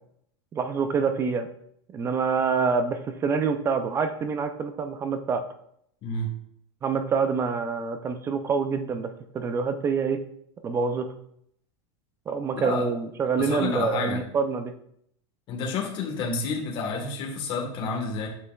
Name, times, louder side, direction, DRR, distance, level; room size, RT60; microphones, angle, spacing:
voice 1, 0.5-1.5 1.9-5.4 6.8-10.2 10.6-11.1 12.3-14.7, right 5 dB, 15° right, 9 dB, 0.3 m, -26 dB
voice 2, 13.4-14.2 15.5-18.3, left 3 dB, 30° left, 0 dB, 1.3 m, -29 dB
7.9 x 5.5 x 2.3 m, 0.70 s
supercardioid pair, 155°, 15 cm